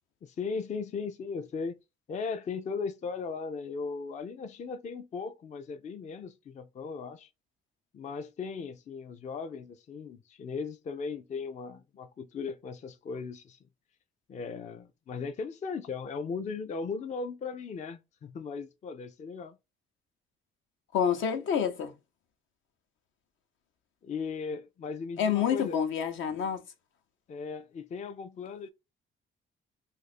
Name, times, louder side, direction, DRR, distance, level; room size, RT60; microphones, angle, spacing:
voice 1, 0.2-1.8 2.1-7.3 7.9-13.6 14.3-19.6 24.0-25.8 27.3-28.7, left 5 dB, 35° left, 0.4 m, -37 dB
voice 2, 20.9-21.9 25.2-26.6, left 8 dB, 75° left, 0.8 m, -28 dB
2.5 x 2.5 x 4.1 m
cardioid pair, 90°, 20 cm